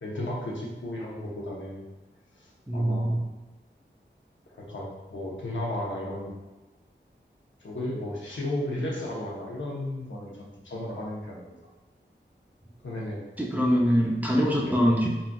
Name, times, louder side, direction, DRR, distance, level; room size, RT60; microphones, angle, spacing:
voice 1, 0.0-1.8 2.4-2.5 2.7-3.2 4.5-6.3 7.6-11.4 12.8-13.3 14.6-14.8, left 1 dB, 80° left, -4 dB, 0.7 m, -34 dB
voice 2, 2.7-3.2 13.4-15.1, equal, 10° right, -2 dB, 0.6 m, -23 dB
3.9 x 2.4 x 2.2 m, 1.1 s
wide cardioid pair, 65°, 19 cm